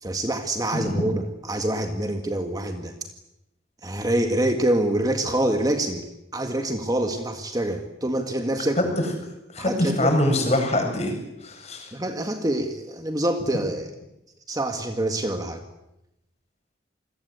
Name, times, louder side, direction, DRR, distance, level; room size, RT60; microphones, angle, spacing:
voice 1, 0.0-3.0 3.8-8.8 9.6-10.1 11.9-13.9 14.5-15.6, right 1 dB, 20° right, 5 dB, 1.9 m, -26 dB
voice 2, 0.7-1.0 9.5-11.1 11.4-11.9, left 1 dB, 35° left, 3 dB, 7.8 m, -23 dB
28.0 x 21.5 x 8.3 m, 0.88 s
head